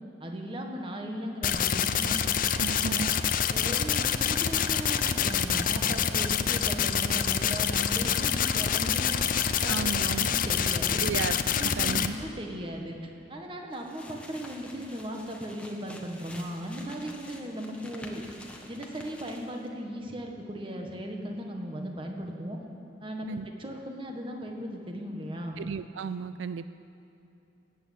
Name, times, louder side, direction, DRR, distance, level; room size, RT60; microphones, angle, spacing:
voice 1, 0.2-2.2 2.7-3.2 3.5-9.2 9.6-11.1 11.6-18.2 18.7-22.6 23.0-25.6, equal, 30° right, 2 dB, 1.5 m, -37 dB
sound 1, 1.4-12.1, left 8 dB, 45° left, 0.6 m, -26 dB
voice 2, 2.5-3.1 9.7-10.3 11.0-12.2 23.3-23.5 25.6-26.7, right 6 dB, 80° right, 13 dB, 0.4 m, -34 dB
sound 2, 13.7-19.7, left 1 dB, 5° left, 1.3 m, -48 dB
19.5 x 8.6 x 8.3 m, 2.8 s
head